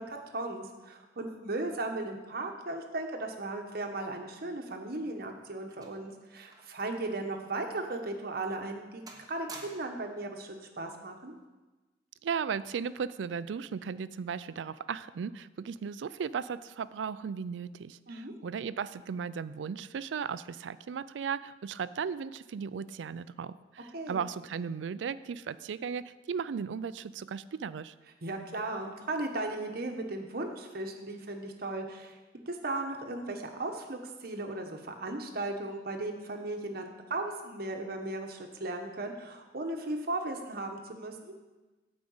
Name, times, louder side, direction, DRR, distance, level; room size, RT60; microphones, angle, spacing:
voice 1, 0.0-9.0 9.3-11.4 18.1-18.3 23.9-24.2 28.2-32.2 32.5-41.3, right 2 dB, 60° right, 3 dB, 1.1 m, -36 dB
sound 1, 5.0-6.9 7.2-7.3 8.0-8.1 8.5-8.8 9.1-10.1 11.1-11.4, right 3 dB, 20° right, 1.1 m, -51 dB
voice 2, 12.2-27.9, right 6 dB, 90° right, 16 dB, 0.4 m, -36 dB
8.7 x 5.1 x 7.8 m, 1.2 s
head